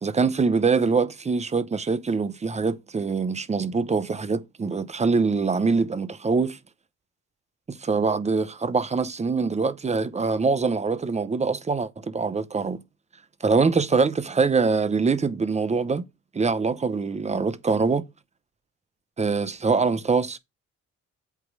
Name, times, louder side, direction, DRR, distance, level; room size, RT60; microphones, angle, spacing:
voice 1, 0.0-6.6 7.7-12.8 13.4-16.0 16.3-18.0 19.2-20.4, right 4 dB, 20° right, 0.8 m, -24 dB
8.2 x 3.0 x 5.4 m
cardioid pair, 90°, 30 cm